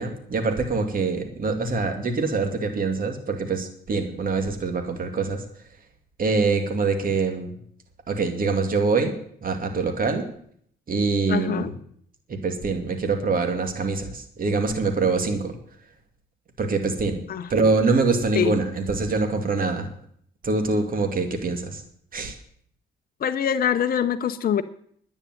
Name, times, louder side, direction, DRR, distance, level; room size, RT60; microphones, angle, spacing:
voice 1, 0.0-5.4 6.2-7.5 8.1-9.1 9.4-10.2 10.9-11.7 12.3-15.5 16.6-17.2 17.5-19.9 20.4-21.8 22.1-22.4, right 3 dB, 45° right, 5 dB, 2.5 m, -24 dB
voice 2, 11.3-11.7 17.3-17.5 18.3-18.5 23.2-24.6, left 8 dB, 50° left, 8 dB, 0.8 m, -24 dB
10.5 x 9.0 x 9.3 m, 0.64 s
cardioid pair, 90°, 20 cm